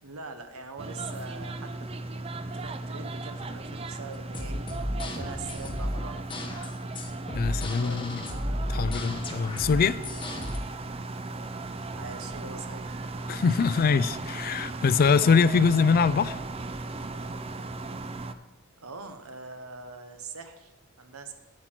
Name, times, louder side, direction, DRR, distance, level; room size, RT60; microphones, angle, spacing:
voice 1, 0.0-2.1 2.5-4.6 5.1-6.2 7.5-8.9 11.9-13.0 13.6-13.8 18.8-21.3, right 4 dB, 85° right, 8 dB, 1.0 m, -43 dB
sound 1, 0.8-18.3, right 2 dB, 25° right, 0.4 m, -37 dB
sound 2, 4.1-10.6, left 1 dB, 25° left, 1.0 m, -34 dB
voice 2, 7.3-8.2 8.7-10.0 13.3-16.4, left 5 dB, 45° left, 16 dB, 0.3 m, -23 dB
8.5 x 8.4 x 4.5 m, 1.2 s
head